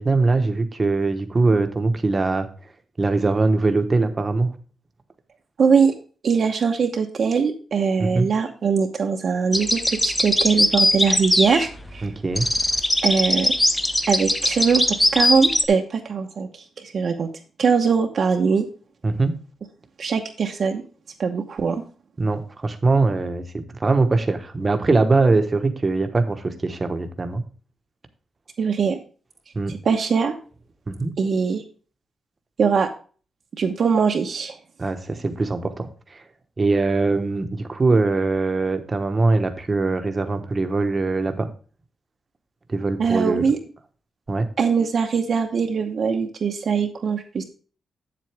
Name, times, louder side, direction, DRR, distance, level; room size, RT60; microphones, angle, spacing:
voice 1, 0.0-2.5 3.0-4.5 8.0-8.3 12.0-12.5 19.0-19.3 22.2-27.4 29.5-29.7 30.9-31.1 34.8-36.2 36.6-41.5 42.7-43.5 44.3-44.5, right 3 dB, 20° right, 7 dB, 1.1 m, -22 dB
voice 2, 5.6-5.9 6.2-12.1 13.0-13.5 14.1-14.8 15.1-17.3 17.6-18.6 20.0-20.8 21.2-21.8 28.6-29.0 29.7-30.3 31.2-31.6 32.6-32.9 33.6-34.6 43.0-43.6 44.6-47.4, right 5 dB, 45° right, 3 dB, 0.9 m, -21 dB
sound 1, 9.5-12.0 12.3-15.6, left 1 dB, 10° left, 0.7 m, -20 dB
8.4 x 7.7 x 3.3 m, 0.38 s
wide cardioid pair, 170°, 0 cm